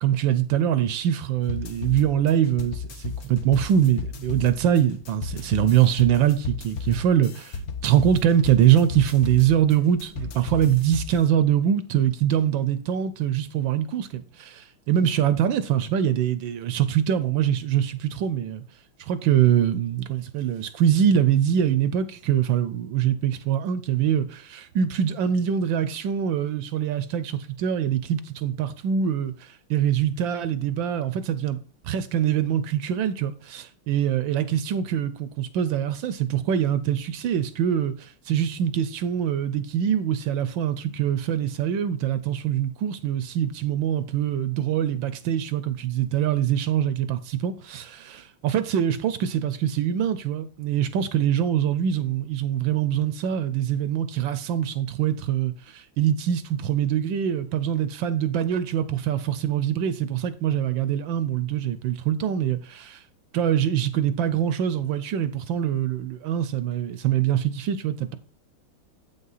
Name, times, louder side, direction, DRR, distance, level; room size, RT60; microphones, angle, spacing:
voice 1, 0.0-18.6 19.0-31.6 31.8-63.0 63.3-68.2, right 9 dB, 75° right, 1.2 m, -24 dB
sound 1, 1.4-11.2, left 5 dB, 60° left, 1.0 m, -35 dB
8.3 x 5.5 x 4.0 m
omnidirectional pair, 2.3 m